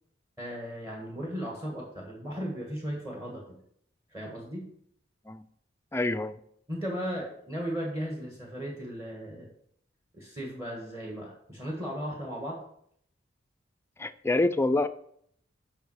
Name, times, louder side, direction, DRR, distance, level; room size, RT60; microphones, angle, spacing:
voice 1, 0.4-3.6 4.1-4.7 6.7-9.5 10.1-12.6, equal, 15° right, -1 dB, 1.5 m, -36 dB
voice 2, 5.9-6.4 14.0-14.9, left 2 dB, 15° left, 11 dB, 0.4 m, -26 dB
6.8 x 5.5 x 6.4 m, 0.68 s
head